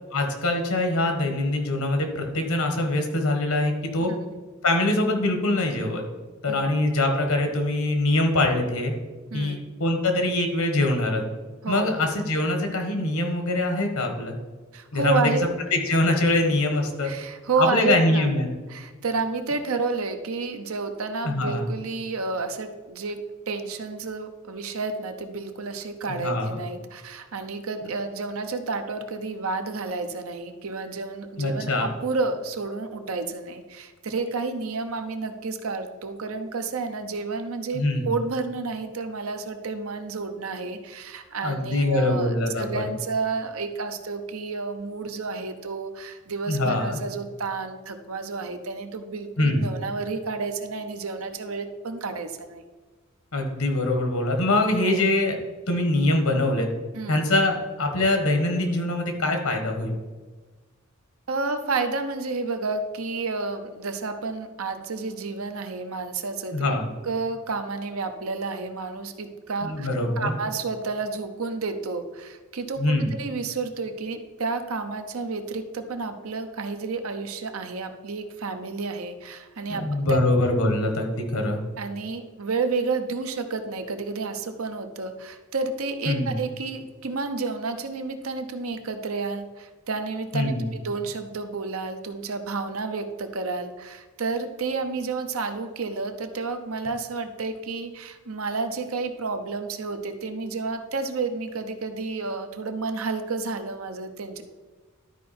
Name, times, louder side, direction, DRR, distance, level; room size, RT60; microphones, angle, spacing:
voice 1, 0.1-4.1 4.6-6.0 6.4-8.9 9.3-11.2 11.7-14.4 14.9-15.2 15.7-17.1 17.6-18.5 21.2-21.7 26.1-26.6 31.4-31.9 37.7-38.1 41.4-42.9 46.5-47.0 49.4-49.7 53.3-55.4 55.7-56.7 57.1-59.9 66.5-66.9 69.6-70.3 72.8-73.1 79.7-81.6 86.0-86.3 90.3-90.7, left 2 dB, 80° left, 4 dB, 1.5 m, -23 dB
voice 2, 6.5-6.8 9.3-9.7 11.6-11.9 14.7-15.5 17.0-18.4 18.7-52.6 54.8-55.1 56.9-57.3 61.3-66.8 67.0-69.9 70.2-72.8 73.1-80.2 81.8-104.4, right 4 dB, 75° right, 7 dB, 0.8 m, -30 dB
12.0 x 4.7 x 4.3 m, 1.4 s
head